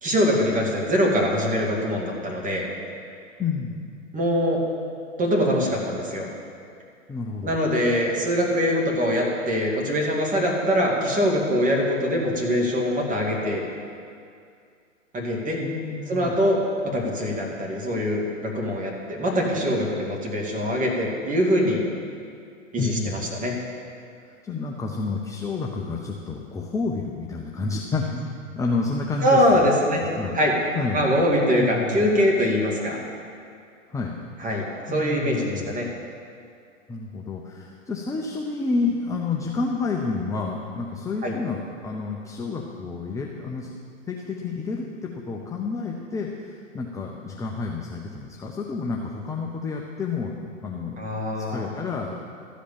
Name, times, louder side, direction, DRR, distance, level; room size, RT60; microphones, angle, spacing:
voice 1, 0.0-2.7 4.1-4.6 5.2-6.3 7.4-13.7 15.1-15.6 16.1-21.8 22.7-23.5 29.2-30.0 30.3-30.5 30.9-33.0 34.4-35.9 41.2-41.3 51.0-51.7, equal, 20° right, -2 dB, 2.3 m, -23 dB
voice 2, 3.4-3.8 7.1-7.6 15.6-16.3 22.8-23.3 24.2-29.7 30.2-30.4 30.7-31.1 31.5-32.1 33.9-34.2 34.9-35.7 36.9-43.7 44.1-51.1 51.4-52.2, left 4 dB, 10° left, -1 dB, 0.6 m, -30 dB
13.0 x 5.1 x 8.5 m, 2.3 s
hypercardioid pair, 110°, 38 cm